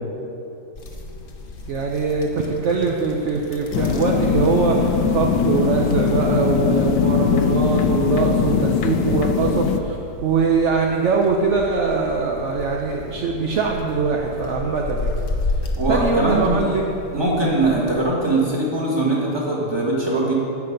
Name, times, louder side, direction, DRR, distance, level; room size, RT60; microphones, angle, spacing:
sound 1, 0.8-18.1, left 2 dB, 40° left, 0.9 m, -33 dB
voice 1, 1.7-10.0 10.2-15.2 15.9-16.9, right 4 dB, 60° right, 0 dB, 0.8 m, -22 dB
sound 2, 3.7-9.8, left 7 dB, 75° left, 1.2 m, -20 dB
voice 2, 15.7-16.6 17.1-20.3, right 2 dB, 15° right, -5 dB, 2.0 m, -21 dB
11.0 x 8.3 x 5.2 m, 2.9 s
omnidirectional pair, 2.0 m